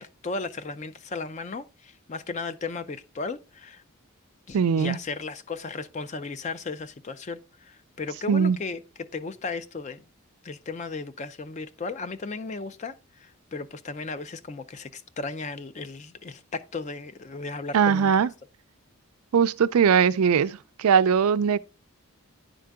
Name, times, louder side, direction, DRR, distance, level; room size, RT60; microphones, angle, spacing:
voice 1, 0.0-3.8 4.5-10.0 10.4-12.9 13.2-18.1, left 4 dB, 35° left, 0.4 m, -35 dB
voice 2, 4.5-5.0 8.3-8.6 17.7-18.3 19.3-21.6, right 7 dB, 90° right, 0.4 m, -20 dB
10.0 x 3.8 x 3.4 m
head